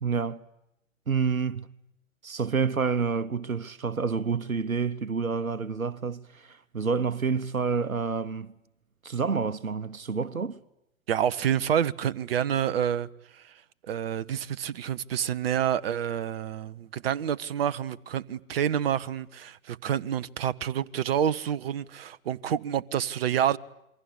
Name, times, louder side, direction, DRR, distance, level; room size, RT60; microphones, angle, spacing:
voice 1, 0.0-0.4 1.1-1.7 2.2-8.5 9.0-10.6, right 5 dB, 85° right, 1.1 m, -28 dB
voice 2, 11.1-13.1 13.3-13.5 13.8-23.6, right 9 dB, 45° right, 1.0 m, -28 dB
28.0 x 24.0 x 8.5 m
figure-of-eight pair, 120°, 41 cm